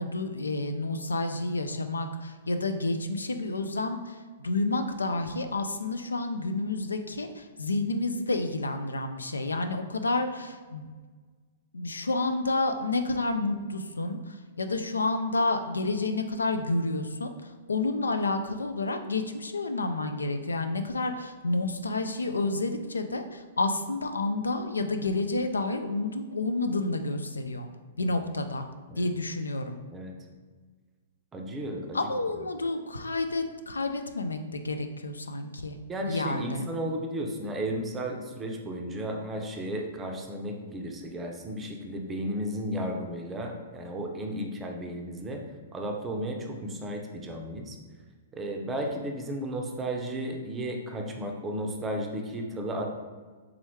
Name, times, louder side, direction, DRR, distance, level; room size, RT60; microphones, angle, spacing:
voice 1, 0.0-4.1 4.4-10.9 11.7-17.3 17.7-27.7 28.0-28.6 29.0-29.8 31.9-35.8 36.1-36.6, left 2 dB, 85° left, 7 dB, 0.3 m, -30 dB
voice 2, 31.3-32.1 35.9-45.4 45.7-47.8 48.3-52.8, right 1 dB, 15° right, 2 dB, 0.5 m, -34 dB
3.5 x 3.0 x 3.2 m, 1.5 s
figure-of-eight pair, 115°, 0 cm